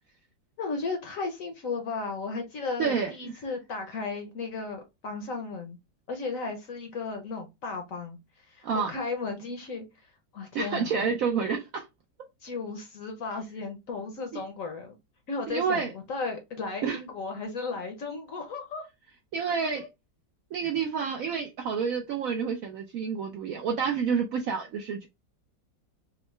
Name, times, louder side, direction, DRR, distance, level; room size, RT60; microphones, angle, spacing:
voice 1, 0.6-5.8 6.1-8.2 8.5-10.1 10.3-10.9 12.4-14.9 15.3-18.9 19.7-19.9, left 4 dB, 60° left, 0.9 m, -35 dB
voice 2, 2.8-3.3 8.6-8.9 10.5-11.9 14.3-14.4 15.5-15.9 16.8-17.0 19.3-19.9 20.5-25.1, right 6 dB, 75° right, 0.8 m, -29 dB
3.7 x 2.1 x 3.1 m
omnidirectional pair, 1.9 m